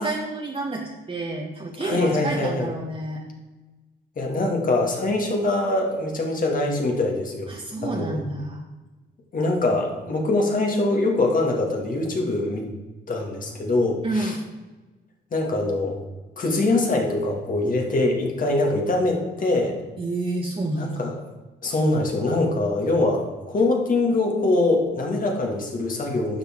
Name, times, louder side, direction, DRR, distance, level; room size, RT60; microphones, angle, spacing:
voice 1, 0.0-3.2 7.5-8.6 14.0-14.4 20.0-21.1, right 2 dB, 30° right, -2 dB, 1.5 m, -29 dB
voice 2, 1.8-2.7 4.2-7.5 7.8-8.2 9.3-12.7 13.1-14.4 15.3-16.0 16.4-19.7 20.8-21.2 21.6-26.4, left 2 dB, 45° left, 0 dB, 2.4 m, -23 dB
11.5 x 7.3 x 3.8 m, 1.2 s
cardioid pair, 90°, 20 cm